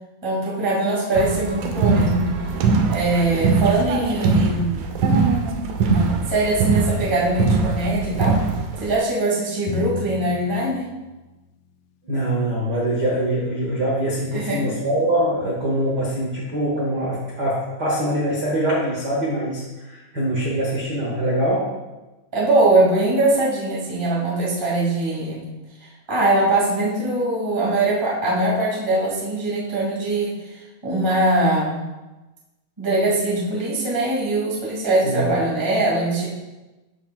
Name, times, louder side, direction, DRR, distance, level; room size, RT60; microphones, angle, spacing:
voice 1, 0.2-2.3 2.9-4.9 6.3-8.4 8.8-10.8 14.3-14.6 22.3-25.4 26.1-30.3 30.8-31.8 32.8-36.3, right 2 dB, 20° right, -5 dB, 0.6 m, -21 dB
sound 1, 1.2-9.0, right 4 dB, 90° right, 1.7 m, -21 dB
Drum, 9.7-12.1, left 6 dB, 80° left, 2.4 m, -36 dB
voice 2, 12.1-21.6 35.0-35.3, right 1 dB, 70° right, -5 dB, 0.9 m, -23 dB
13.5 x 6.0 x 2.3 m, 1.1 s
omnidirectional pair, 4.4 m